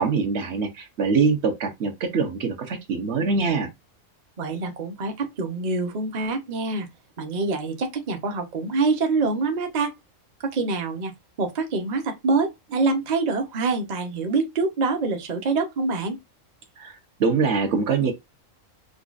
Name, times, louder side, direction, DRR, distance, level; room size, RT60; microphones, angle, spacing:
voice 1, 0.0-3.7 16.8-16.9 17.2-18.1, right 5 dB, 60° right, 1.0 m, -23 dB
voice 2, 4.4-6.9 7.2-9.9 10.4-11.1 11.4-16.2, right 3 dB, 45° right, 0.7 m, -25 dB
5.1 x 2.3 x 2.4 m
omnidirectional pair, 1.3 m